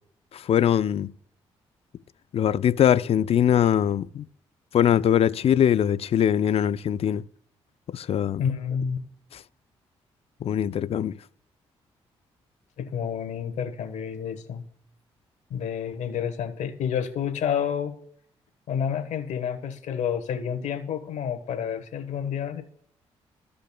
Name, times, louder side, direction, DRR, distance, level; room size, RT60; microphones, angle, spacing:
voice 1, 0.3-1.1 2.3-4.3 4.7-7.2 7.9-8.4 10.4-11.1, left 9 dB, 55° left, 0.4 m, -22 dB
voice 2, 8.4-9.0 12.8-14.6 15.5-17.9 18.7-22.6, left 8 dB, 70° left, 1.3 m, -29 dB
15.0 x 5.2 x 2.3 m
supercardioid pair, 50°, 12 cm